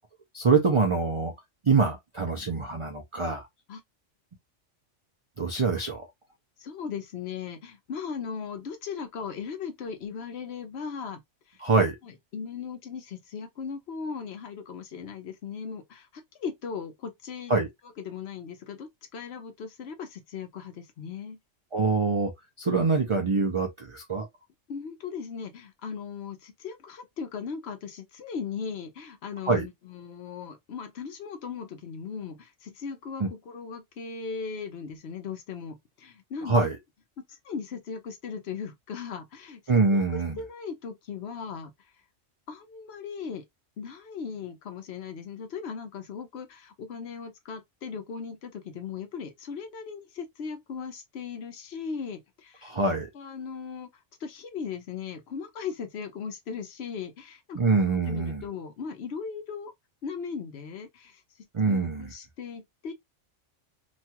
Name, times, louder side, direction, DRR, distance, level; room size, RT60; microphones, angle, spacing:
voice 1, 0.3-1.3 1.6-3.5 5.4-6.1 11.6-12.0 17.5-17.7 21.7-22.3 22.6-24.3 29.5-29.7 33.2-33.3 36.4-36.8 39.7-40.4 52.6-53.1 57.5-58.4 61.5-62.1, right 4 dB, 45° right, 0.4 m, -24 dB
voice 2, 6.6-11.2 11.5-11.6 12.0-17.5 18.0-21.4 24.7-36.6 37.3-39.6 40.1-41.7 42.5-43.4 43.8-52.7 53.1-53.9 54.2-57.6 57.9-59.7 60.0-61.2 61.7-62.9, left 6 dB, 65° left, 0.9 m, -38 dB
3.0 x 2.3 x 2.8 m
omnidirectional pair, 1.2 m